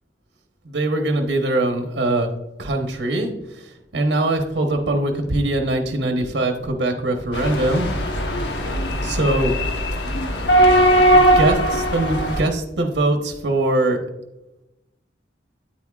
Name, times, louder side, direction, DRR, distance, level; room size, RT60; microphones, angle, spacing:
voice 1, 0.6-2.3 2.6-7.9 9.0-9.5 11.1-14.0, right 2 dB, 80° right, 4 dB, 1.1 m, -22 dB
sound 1, 7.3-12.4, right 1 dB, 80° left, 1.1 m, -19 dB
9.1 x 8.5 x 2.4 m, 0.93 s
head